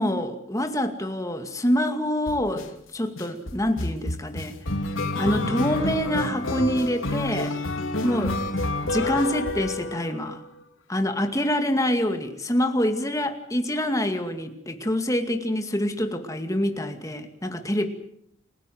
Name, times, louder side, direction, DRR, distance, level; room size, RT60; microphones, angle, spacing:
voice 1, 0.0-4.6 5.2-7.6 8.0-8.4 8.8-10.4 10.9-17.9, left 1 dB, 15° left, 6 dB, 2.3 m, -26 dB
sound 1, 2.3-2.6 3.2-10.3, left 2 dB, 85° left, 2.9 m, -28 dB
29.0 x 16.5 x 7.8 m, 0.70 s
head